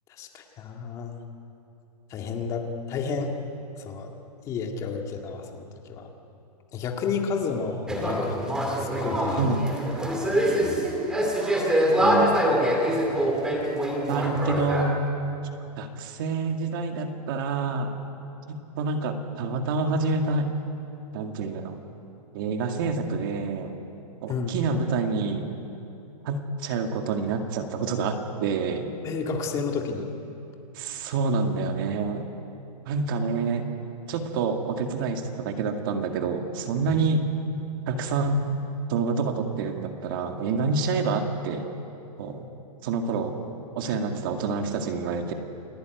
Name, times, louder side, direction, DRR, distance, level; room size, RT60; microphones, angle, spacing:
voice 1, 0.2-1.1 2.1-3.3 3.8-4.1 4.5-6.1 6.7-8.4 8.8-9.6 10.2-10.5 24.3-24.6 29.0-30.1, left 5 dB, 15° left, 3 dB, 1.9 m, -31 dB
sound 1, 7.9-14.8, equal, 5° right, 2.4 m, -24 dB
voice 2, 9.4-9.7 12.0-12.3 13.0-13.1 14.1-15.1 15.8-17.9 18.5-20.5 21.1-21.8 22.3-23.7 24.2-25.5 26.2-28.9 30.8-32.3 32.9-33.7 34.1-37.3 37.9-38.5 38.9-41.7 42.2-42.5 42.8-43.3 43.8-45.3, right 4 dB, 35° right, 5 dB, 2.1 m, -27 dB
29.5 x 19.5 x 9.4 m, 2.8 s
hypercardioid pair, 175°, 20 cm